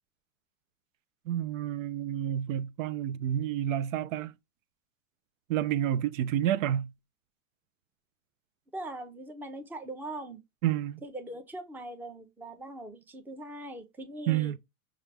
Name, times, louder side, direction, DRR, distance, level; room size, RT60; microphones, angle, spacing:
voice 1, 1.3-4.3 5.5-6.9 10.6-11.0 14.3-14.6, right 11 dB, 70° right, 0.5 m, -29 dB
voice 2, 8.7-10.4 11.0-14.5, right 1 dB, 5° right, 0.5 m, -41 dB
5.6 x 2.4 x 3.2 m
hypercardioid pair, 120°, 41 cm